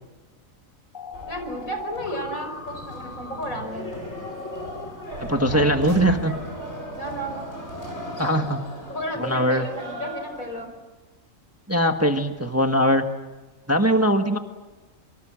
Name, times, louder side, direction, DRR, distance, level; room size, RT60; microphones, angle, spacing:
sound 1, 0.9-4.9, left 4 dB, 40° left, 1.6 m, -39 dB
sound 2, 1.1-10.7, equal, 55° left, 6.8 m, -38 dB
voice 1, 1.3-4.2 5.5-6.4 7.0-7.5 8.9-10.7, equal, 85° left, 5 dB, 6.1 m, -33 dB
sound 3, 5.1-6.8, right 2 dB, 85° right, 3.7 m, -35 dB
voice 2, 5.3-6.3 8.2-8.6 9.2-9.7 11.7-13.0 13.7-14.4, equal, 10° right, 5 dB, 1.4 m, -21 dB
28.0 x 25.0 x 7.6 m, 1.2 s
omnidirectional pair, 1.4 m